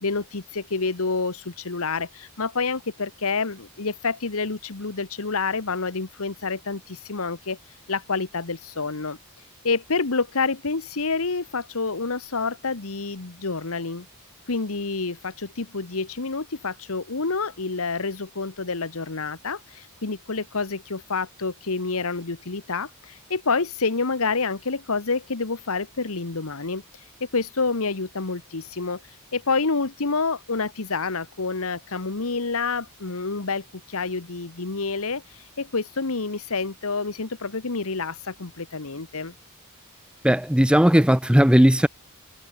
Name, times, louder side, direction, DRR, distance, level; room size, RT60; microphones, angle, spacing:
voice 1, 0.0-7.6 7.9-9.2 9.6-14.0 14.5-26.8 27.2-29.0 29.3-39.3, left 4 dB, 70° left, 1.4 m, -28 dB
voice 2, 40.2-41.9, equal, 5° right, 0.7 m, -17 dB
head